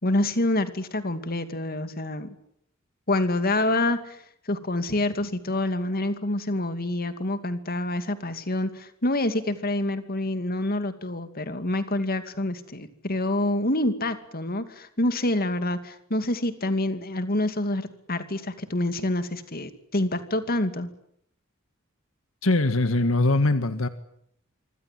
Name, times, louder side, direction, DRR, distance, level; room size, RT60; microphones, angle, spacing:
voice 1, 0.0-2.3 3.1-20.9, left 1 dB, 45° left, 10 dB, 2.6 m, -27 dB
voice 2, 22.4-23.9, left 2 dB, 70° left, 10 dB, 1.7 m, -22 dB
26.0 x 25.5 x 7.6 m, 0.70 s
head